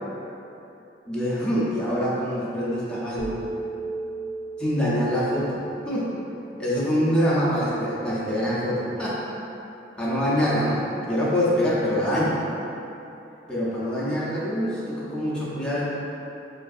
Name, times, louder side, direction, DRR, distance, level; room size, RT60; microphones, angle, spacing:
voice 1, 1.1-3.4 4.6-5.6 5.9-6.1 6.6-9.2 10.0-10.8 11.1-12.4 13.5-15.8, equal, 5° left, -9 dB, 0.6 m, -24 dB
sound 1, 3.2-7.3, right 2 dB, 60° left, 0.6 m, -36 dB
5.6 x 2.6 x 2.3 m, 2.9 s
head